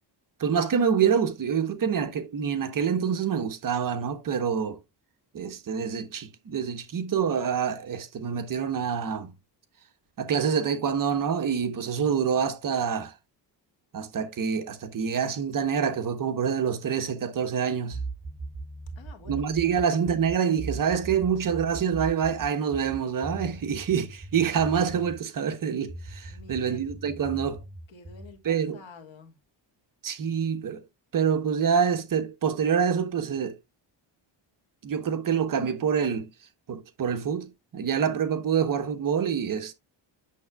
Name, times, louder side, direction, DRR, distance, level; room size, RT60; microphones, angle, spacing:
voice 1, 0.4-4.8 5.3-9.3 10.2-13.1 13.9-18.0 19.3-27.6 28.4-28.8 30.0-30.8 31.1-33.6 34.8-36.3 36.7-39.7, right 7 dB, 45° right, 0.9 m, -26 dB
sound 1, 17.9-25.2 25.9-28.4, right 3 dB, 15° right, 0.6 m, -39 dB
voice 2, 19.0-20.3 26.3-26.8 27.9-29.3, left 5 dB, 70° left, 2.1 m, -49 dB
8.5 x 6.7 x 2.2 m
wide cardioid pair, 165°, 48 cm